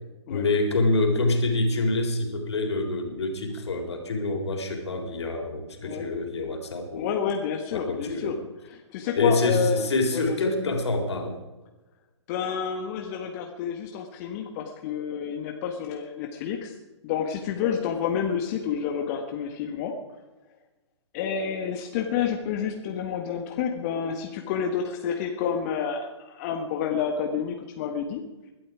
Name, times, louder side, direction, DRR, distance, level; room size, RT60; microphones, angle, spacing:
voice 1, 0.3-7.1 7.7-8.4 9.2-11.4, left 2 dB, 65° left, 4 dB, 3.9 m, -26 dB
voice 2, 6.9-8.3 8.6-9.8 10.1-10.4 12.3-16.8 17.0-19.9 21.1-28.2, left 7 dB, 30° left, 3 dB, 1.6 m, -29 dB
21.0 x 12.5 x 4.9 m, 1.1 s
figure-of-eight pair, 125°, 15 cm